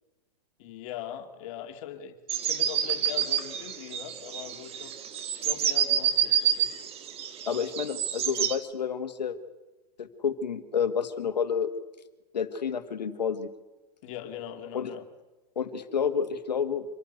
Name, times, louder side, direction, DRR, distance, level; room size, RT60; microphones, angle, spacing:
voice 1, 0.6-4.9 5.3-6.9 14.0-15.1, left 10 dB, 50° left, 5 dB, 2.6 m, -41 dB
sound 1, 2.3-8.6, right 9 dB, 30° right, 1.5 m, -28 dB
voice 2, 7.5-9.4 10.0-11.7 12.3-13.5 14.7-14.9 15.6-16.8, left 7 dB, 85° left, 9 dB, 1.9 m, -29 dB
25.5 x 12.0 x 9.3 m, 1.1 s
hypercardioid pair, 115°, 21 cm